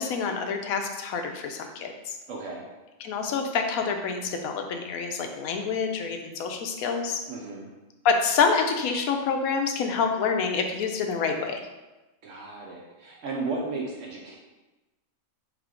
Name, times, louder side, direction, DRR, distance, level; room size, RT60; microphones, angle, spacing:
voice 1, 0.0-2.2 3.0-7.2 8.0-11.6, left 5 dB, 85° left, 4 dB, 1.0 m, -27 dB
voice 2, 2.3-2.7 7.3-7.7 12.2-14.4, right 3 dB, 70° right, -2 dB, 0.9 m, -34 dB
3.5 x 3.2 x 3.7 m, 1.1 s
omnidirectional pair, 1.4 m